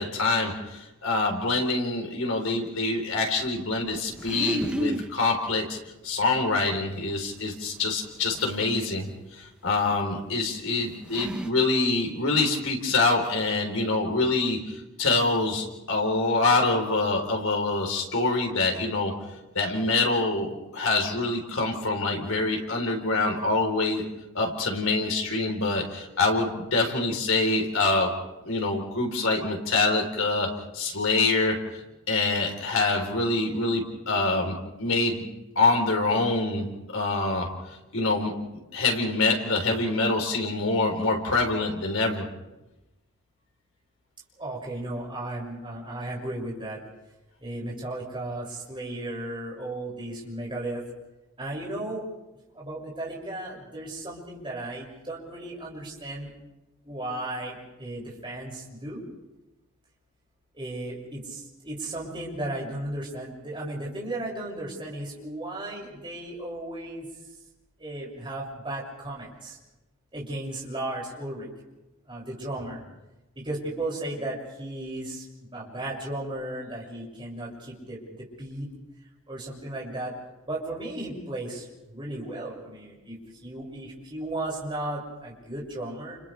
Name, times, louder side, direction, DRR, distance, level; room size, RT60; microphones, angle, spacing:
voice 1, 0.0-5.8 6.0-9.1 9.4-19.2 19.5-24.0 24.3-28.1 28.4-30.5 30.7-31.6 32.1-35.3 35.6-37.5 37.9-38.3 38.7-42.3, left 3 dB, 85° left, 2 dB, 4.1 m, -25 dB
sound 1, 3.9-5.1 7.1-7.2 8.3-8.4 9.9-10.0 10.7-10.8 11.0-11.5, right 1 dB, 5° right, 0.9 m, -30 dB
voice 2, 44.4-46.8 47.4-50.8 51.4-52.0 52.5-56.3 56.8-59.0 60.5-67.1 67.8-69.6 70.1-71.5 72.1-72.8 73.3-78.7 79.3-80.1 80.5-81.6 81.9-86.2, right 1 dB, 25° right, -4 dB, 6.8 m, -35 dB
30.0 x 30.0 x 3.5 m, 1.0 s
head